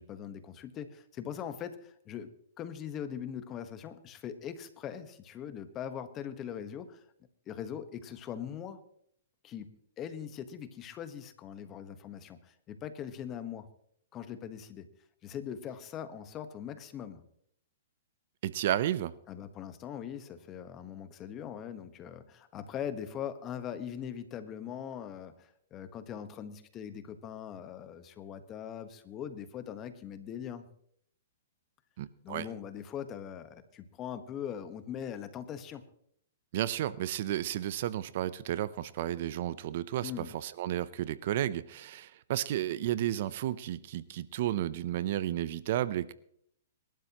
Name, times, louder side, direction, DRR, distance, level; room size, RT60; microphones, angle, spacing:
voice 1, 0.0-7.0 7.5-8.8 9.4-13.7 14.1-14.9 15.2-17.2 19.3-30.7 32.2-35.8 40.0-40.3, left 9 dB, 25° left, 10 dB, 1.3 m, -41 dB
voice 2, 18.4-19.1 32.0-32.5 36.5-46.1, right 12 dB, 55° right, 17 dB, 0.6 m, -32 dB
24.5 x 12.5 x 3.0 m, 0.68 s
hypercardioid pair, 140°, 0 cm